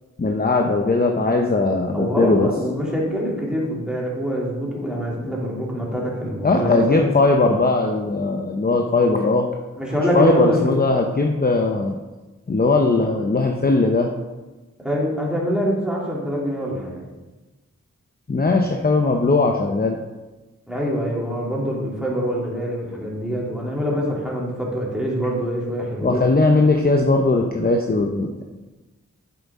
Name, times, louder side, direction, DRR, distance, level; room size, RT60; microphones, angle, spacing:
voice 1, 0.2-2.5 6.4-9.5 10.1-11.9 12.5-14.1 18.3-20.0 26.0-28.4, left 3 dB, 30° left, 2 dB, 0.7 m, -19 dB
voice 2, 1.9-7.1 9.8-10.8 14.8-17.1 20.7-26.3, equal, 5° right, -4 dB, 2.8 m, -25 dB
8.0 x 7.0 x 3.7 m, 1.2 s
cardioid pair, 45°, 30 cm